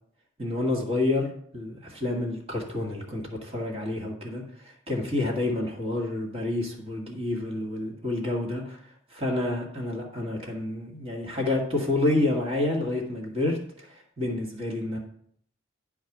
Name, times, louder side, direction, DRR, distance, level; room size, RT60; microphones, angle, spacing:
voice 1, 0.4-15.0, left 2 dB, 30° right, -1 dB, 1.9 m, -29 dB
11.0 x 4.7 x 6.0 m, 0.65 s
head